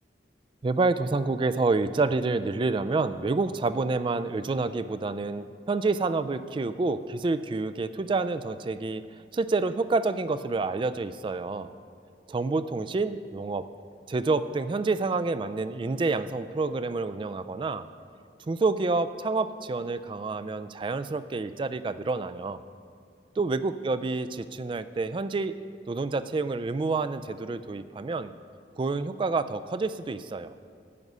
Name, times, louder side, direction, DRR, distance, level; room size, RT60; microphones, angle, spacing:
voice 1, 0.6-9.0 9.3-11.7 12.3-13.6 14.1-17.9 18.5-22.6 23.4-25.5 25.9-28.3 28.8-30.5, right 3 dB, 30° right, 13 dB, 0.3 m, -28 dB
11.0 x 8.1 x 5.4 m, 2.3 s
head